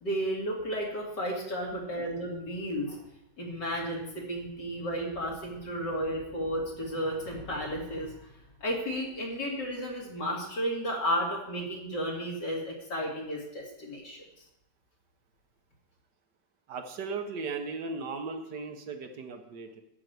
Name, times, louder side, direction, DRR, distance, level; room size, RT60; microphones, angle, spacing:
voice 1, 0.0-3.0 3.4-8.3 8.6-14.2, equal, 65° left, -2 dB, 3.1 m, -33 dB
voice 2, 16.7-19.8, right 4 dB, 65° right, 6 dB, 1.6 m, -37 dB
11.5 x 4.7 x 8.1 m, 0.88 s
omnidirectional pair, 2.0 m